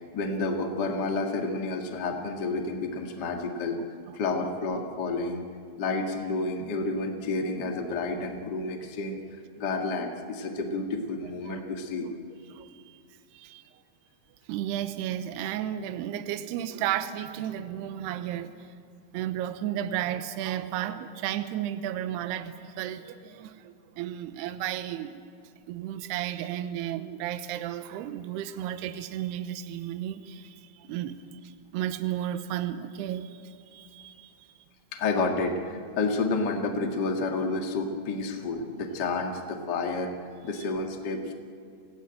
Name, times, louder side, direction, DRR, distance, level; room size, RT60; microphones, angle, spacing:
voice 1, 0.1-5.4 5.8-9.2 9.6-12.1 34.9-40.1 40.4-41.3, left 3 dB, 55° left, 2 dB, 1.1 m, -30 dB
voice 2, 12.5-13.0 13.3-13.6 14.5-18.5 19.1-25.3 25.7-31.2 31.4-34.5, right 11 dB, 75° right, 10 dB, 2.7 m, -33 dB
27.5 x 16.5 x 9.0 m, 2.3 s
omnidirectional pair, 5.4 m